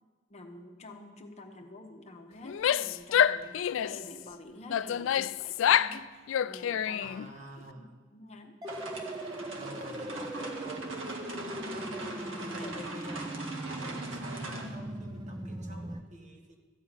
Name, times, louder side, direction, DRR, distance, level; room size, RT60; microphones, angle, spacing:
voice 1, 0.3-7.2 7.7-8.6 11.3-11.6 12.6-12.8, left 2 dB, 35° left, 4 dB, 1.0 m, -48 dB
Female speech woman speaking / Yell, 2.4-4.1 4.7-6.0 6.3-7.3, left 9 dB, 75° left, 0.3 m, -27 dB
voice 2, 7.0-7.9 9.6-10.9 11.4-16.6, right 1 dB, 40° right, 2 dB, 1.5 m, -48 dB
sound 1, 8.6-16.0, right 1 dB, 20° right, 0.6 m, -39 dB
sound 2, 8.7-14.7, right 2 dB, 80° right, 1.7 m, -41 dB
13.5 x 5.5 x 8.9 m, 1.4 s
head